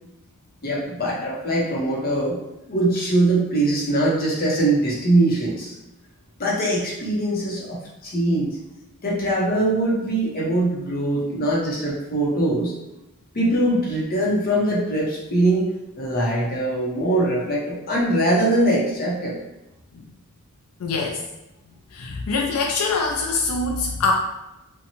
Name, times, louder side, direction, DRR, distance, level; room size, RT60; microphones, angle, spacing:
voice 1, 0.6-2.4 2.7-5.7 6.4-8.6 9.0-12.7 13.3-19.4, right 1 dB, 45° left, -4 dB, 0.7 m, -22 dB
voice 2, 20.8-21.2 21.9-24.1, left 3 dB, 90° left, 1 dB, 0.4 m, -24 dB
2.7 x 2.2 x 2.9 m, 0.91 s
head